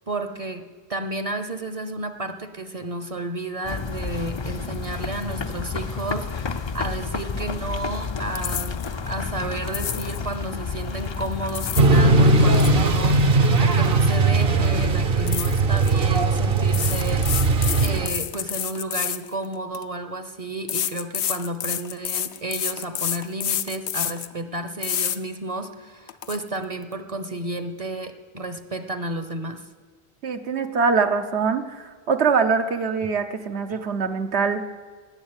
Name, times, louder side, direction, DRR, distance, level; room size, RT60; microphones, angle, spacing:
voice 1, 0.0-13.2 13.6-17.3 17.8-29.6, right 2 dB, 35° right, 8 dB, 0.8 m, -32 dB
sound 1, 3.6-14.2, left 5 dB, 35° left, 0.4 m, -31 dB
sound 2, 8.3-8.9 9.7-10.2 11.3-11.9 12.3-14.1 14.4-14.7 15.3-15.9 16.7-19.8 20.7-24.3 24.8-25.2 25.6-25.7 26.1-26.4, left 10 dB, 75° left, 0.9 m, -29 dB
sound 3, 11.8-18.1, right 3 dB, 60° right, 1.1 m, -19 dB
voice 2, 30.2-34.6, right 5 dB, 75° right, 7 dB, 1.2 m, -23 dB
19.5 x 7.3 x 8.9 m, 1.5 s
omnidirectional pair, 1.1 m